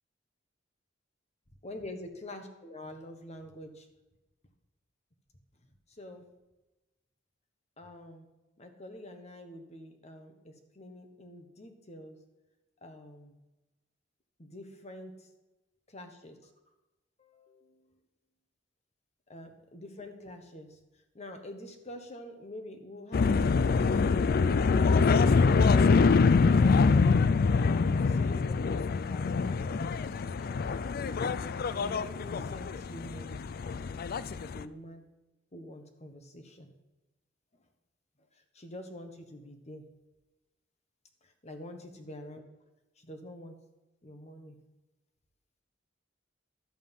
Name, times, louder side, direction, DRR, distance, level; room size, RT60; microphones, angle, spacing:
voice 1, 1.6-3.9 5.9-6.2 7.8-8.3 8.6-12.2 12.8-13.4 14.4-15.3 15.9-16.5 17.2-17.8 19.3-20.8 21.1-23.9 24.1-25.6 26.2-27.4 27.9-30.6 31.5-33.4 34.2-35.0 35.5-36.7 38.5-39.9 41.2-42.4 43.0-43.6 44.0-44.6, left 1 dB, 35° left, 6 dB, 1.3 m, -46 dB
sound 1, 23.1-34.6, left 4 dB, 50° left, 0.4 m, -25 dB
12.0 x 7.8 x 5.4 m, 1.0 s
head